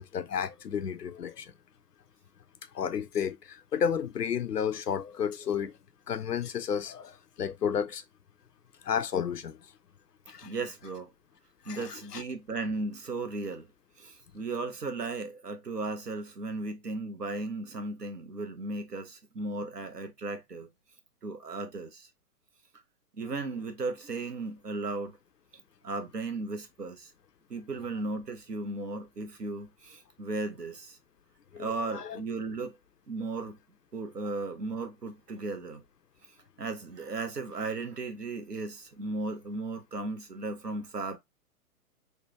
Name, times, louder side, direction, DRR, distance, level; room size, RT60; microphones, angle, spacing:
voice 1, 0.0-1.5 2.7-5.8 6.1-8.0 8.8-9.6 10.3-10.5 11.7-12.2 31.5-32.2, left 7 dB, 85° left, 0.5 m, -32 dB
voice 2, 10.4-11.1 11.7-13.7 14.0-20.7 21.2-22.1 23.1-25.2 25.8-27.1 27.5-31.0 31.5-32.8 33.1-33.6 33.9-35.8 36.6-41.2, right 3 dB, 85° right, 0.9 m, -36 dB
3.3 x 2.1 x 3.0 m
figure-of-eight pair, 115°, 47 cm